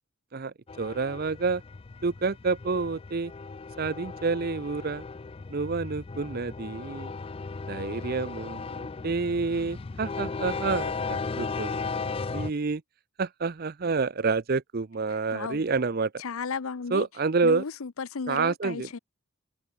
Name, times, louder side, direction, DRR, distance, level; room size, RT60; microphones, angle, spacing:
voice 1, 0.3-1.6 2.0-3.3 3.8-5.0 5.5-7.1 7.7-12.8 13.2-16.1 16.9-17.6 18.3-18.9, right 4 dB, 45° right, 0.5 m, -29 dB
sound 1, 0.7-12.5, left 4 dB, 25° left, 0.3 m, -36 dB
voice 2, 15.1-15.6 16.2-17.1 17.4-19.0, left 5 dB, 70° left, 0.7 m, -34 dB
head